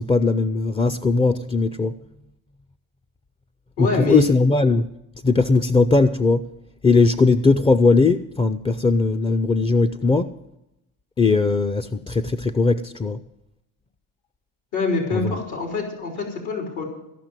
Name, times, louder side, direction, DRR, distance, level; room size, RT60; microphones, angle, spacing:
voice 1, 0.0-2.0 3.8-4.9 5.2-6.4 6.8-10.4 11.2-13.2 15.1-15.3, left 3 dB, 15° left, 0.4 m, -19 dB
voice 2, 3.8-4.2 14.7-16.8, left 3 dB, 80° left, 3.5 m, -25 dB
15.0 x 5.9 x 9.0 m
supercardioid pair, 90°, 37 cm